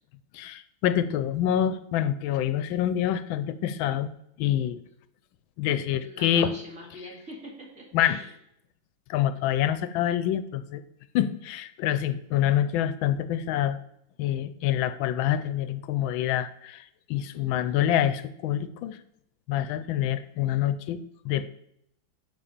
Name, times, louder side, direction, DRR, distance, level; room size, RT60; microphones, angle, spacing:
voice 1, 0.3-4.1 4.4-4.8 5.6-6.5 7.9-8.2 9.1-10.8 11.1-13.8 14.2-16.8 17.1-19.0 19.5-21.0 21.2-21.5, left 11 dB, 85° left, 13 dB, 1.3 m, -26 dB
voice 2, 6.0-8.3 17.3-17.8, equal, 40° right, -2 dB, 2.5 m, -44 dB
11.0 x 4.3 x 5.1 m, 0.75 s
omnidirectional pair, 2.1 m